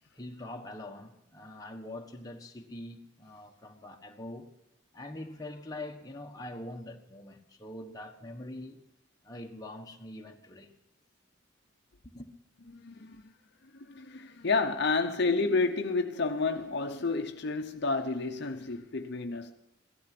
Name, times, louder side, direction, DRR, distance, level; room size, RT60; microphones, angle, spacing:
voice 1, 0.1-4.5 4.9-8.8 9.2-10.7 12.0-12.3, left 1 dB, 20° left, 1.3 m, -43 dB
voice 2, 12.7-13.3 13.7-19.5, left 3 dB, 55° left, 0.8 m, -30 dB
17.0 x 13.0 x 6.0 m
head